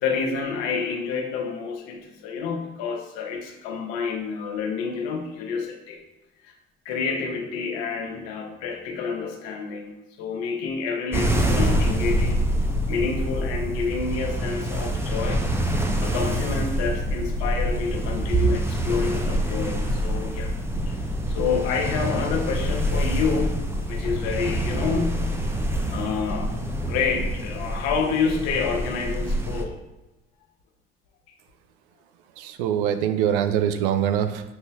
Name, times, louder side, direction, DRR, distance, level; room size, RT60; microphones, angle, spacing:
voice 1, 0.0-6.0 6.4-6.5 6.8-9.9 10.2-12.5 12.9-20.5 20.9-21.0 21.3-23.6 23.9-25.3 25.9-26.5 26.8-29.8, left 5 dB, 55° left, 2 dB, 1.1 m, -28 dB
sound 1, 11.1-29.6, right 1 dB, 10° right, 0.8 m, -26 dB
voice 2, 32.4-34.4, right 9 dB, 60° right, 9 dB, 0.5 m, -23 dB
7.8 x 5.4 x 2.3 m, 1.0 s
figure-of-eight pair, 50°, 30 cm